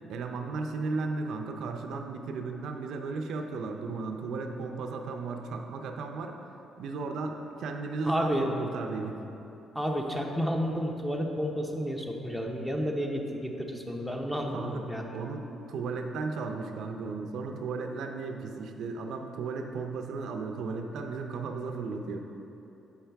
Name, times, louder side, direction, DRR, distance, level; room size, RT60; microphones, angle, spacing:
voice 1, 0.1-6.4 6.8-9.2 14.5-14.8 15.1-22.2, right 4 dB, 75° right, 4 dB, 0.5 m, -35 dB
voice 2, 8.0-8.5 9.7-15.1, equal, 5° left, 1 dB, 0.7 m, -31 dB
7.0 x 5.6 x 3.4 m, 2.9 s
cardioid pair, 90°, 0 cm